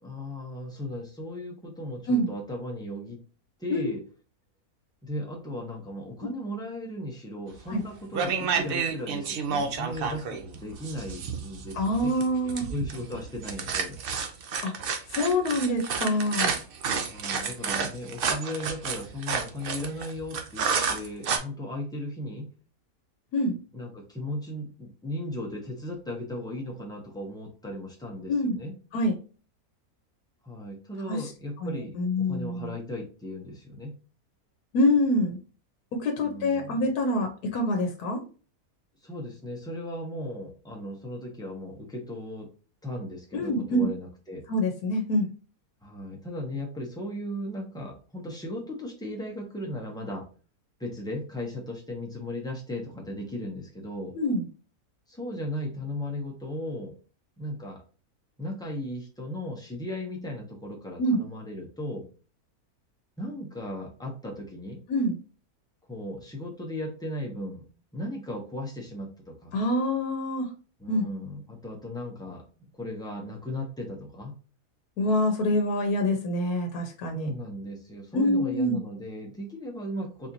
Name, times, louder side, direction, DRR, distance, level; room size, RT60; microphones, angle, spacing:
voice 1, 0.0-3.2 3.6-4.0 5.0-14.0 17.0-22.5 23.7-28.7 30.4-34.0 36.2-36.9 39.0-42.5 42.8-44.5 45.8-50.3 50.8-54.1 55.1-56.9 57.4-57.8 58.4-62.1 63.2-64.8 65.9-67.6 67.9-69.5 70.8-74.4 77.1-80.3, left 1 dB, 5° left, -1 dB, 0.4 m, -36 dB
sound 1, 7.6-7.8 8.1-21.4, right 5 dB, 70° right, 0.5 m, -30 dB
voice 2, 11.7-12.6 14.6-14.7 15.1-16.6 23.3-23.6 28.3-28.6 28.9-29.1 31.1-31.3 31.6-32.7 34.7-35.4 35.9-38.2 43.3-43.9 44.5-45.3 54.1-54.4 61.0-61.2 64.9-65.2 69.5-70.5 70.9-71.1 75.0-77.3 78.1-78.8, left 1 dB, 85° left, 3 dB, 1.2 m, -26 dB
4.1 x 2.5 x 2.8 m, 0.36 s
omnidirectional pair, 1.6 m